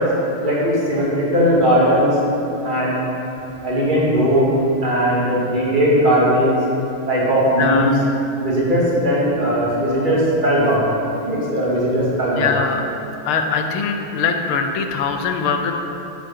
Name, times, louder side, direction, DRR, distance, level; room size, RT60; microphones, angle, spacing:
voice 1, 0.4-2.2 2.6-3.0 3.6-6.6 7.1-7.9 8.4-10.9 11.2-12.6, equal, 20° right, -6 dB, 2.6 m, -18 dB
voice 2, 7.6-7.9 12.4-12.8 13.3-15.7, left 5 dB, 85° left, 5 dB, 1.8 m, -21 dB
12.5 x 8.4 x 5.6 m, 3.0 s
omnidirectional pair, 2.3 m